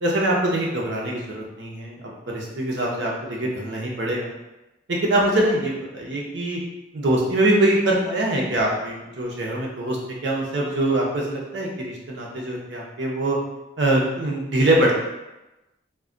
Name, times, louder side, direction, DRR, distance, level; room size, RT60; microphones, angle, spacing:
voice 1, 0.0-2.0 2.3-4.3 4.9-6.6 6.9-10.0 10.2-13.4 13.8-15.0, right 1 dB, 70° right, -3 dB, 0.6 m, -23 dB
2.2 x 2.1 x 3.6 m, 1.0 s
head